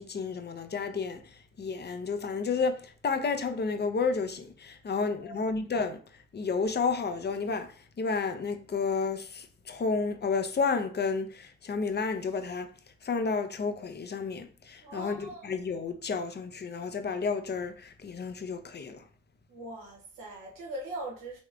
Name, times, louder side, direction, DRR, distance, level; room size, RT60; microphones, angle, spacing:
voice 1, 0.0-6.0 6.3-7.7 8.0-12.7 13.0-19.0, left 4 dB, 30° left, 0.6 m, -31 dB
voice 2, 5.0-5.4 14.8-15.5 19.5-21.4, right 1 dB, 85° right, 1.0 m, -41 dB
3.5 x 3.1 x 2.4 m
supercardioid pair, 40°, 32 cm